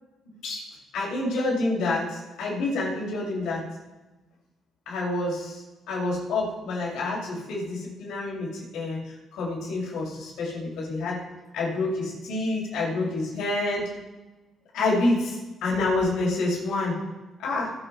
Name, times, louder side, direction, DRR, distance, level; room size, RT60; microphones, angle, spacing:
voice 1, 0.3-0.6 0.9-3.6 4.9-11.2 11.5-13.9 14.7-16.9 17.4-17.7, left 2 dB, 80° left, -4 dB, 6.9 m, -28 dB
25.5 x 9.0 x 4.7 m, 1.1 s
cardioid pair, 90°, 0 cm